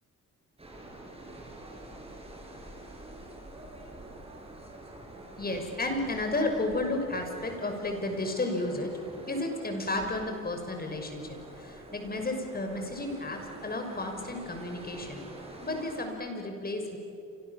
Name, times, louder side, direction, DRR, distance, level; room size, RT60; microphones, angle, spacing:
sound 1, 0.6-16.1, right 1 dB, 20° right, 6.7 m, -47 dB
voice 1, 5.4-8.9 9.3-15.3 15.6-17.0, left 2 dB, 30° left, 4 dB, 6.1 m, -32 dB
29.5 x 25.5 x 7.4 m, 2.7 s
cardioid pair, 90°, 30 cm